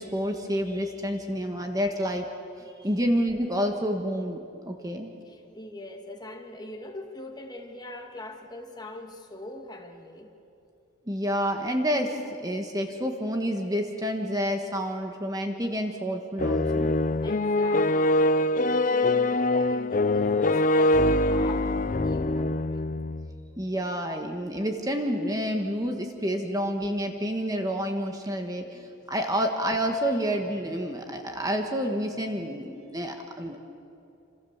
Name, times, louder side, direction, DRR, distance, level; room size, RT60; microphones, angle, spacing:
voice 1, 0.0-2.3 2.8-5.1 11.1-17.0 23.6-33.6, equal, 15° right, 4 dB, 1.5 m, -29 dB
voice 2, 5.2-10.4 17.2-22.9, left 1 dB, 20° left, 3 dB, 1.9 m, -42 dB
sound 1, 16.4-23.3, left 2 dB, 40° left, 0.5 m, -23 dB
28.5 x 27.0 x 7.3 m, 2.7 s
head